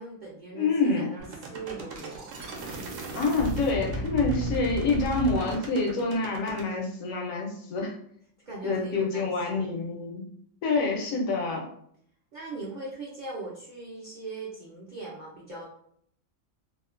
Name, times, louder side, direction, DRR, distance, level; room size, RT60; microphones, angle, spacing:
voice 1, 0.0-2.3 8.4-9.7 12.3-15.6, right 3 dB, 55° right, -5 dB, 0.5 m, -40 dB
voice 2, 0.5-1.1 3.1-7.9 8.6-10.3 10.6-11.7, left 3 dB, 80° left, 1 dB, 1.1 m, -27 dB
sound 1, 1.2-6.7, right 1 dB, 70° right, 0.9 m, -35 dB
2.7 x 2.1 x 2.4 m, 0.65 s
omnidirectional pair, 1.4 m